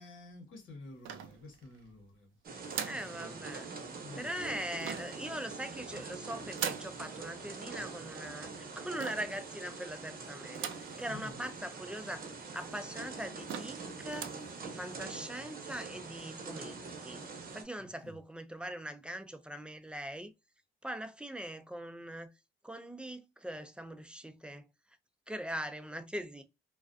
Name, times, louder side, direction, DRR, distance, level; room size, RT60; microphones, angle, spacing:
voice 1, 0.0-2.4 2.8-3.5 4.0-4.6 11.0-11.5 17.8-18.2, left 2 dB, 85° left, 1.0 m, -51 dB
sound 1, 1.0-1.8 2.7-3.1 4.8-5.2 6.6-7.0 9.0-9.4 10.5-11.0 11.4-11.5 11.8-11.9 12.6-12.7 13.1-13.2 13.5-13.8 14.1-14.5, right 9 dB, 80° right, 0.4 m, -39 dB
sound 2, 2.4-17.6, right 4 dB, 50° right, 0.7 m, -44 dB
voice 2, 2.8-3.7 4.1-12.3 12.5-14.3 14.6-17.3 17.5-20.3 20.8-22.3 22.6-24.7 25.3-26.4, equal, 5° right, 0.3 m, -41 dB
2.4 x 2.2 x 2.4 m
cardioid pair, 90°, 20 cm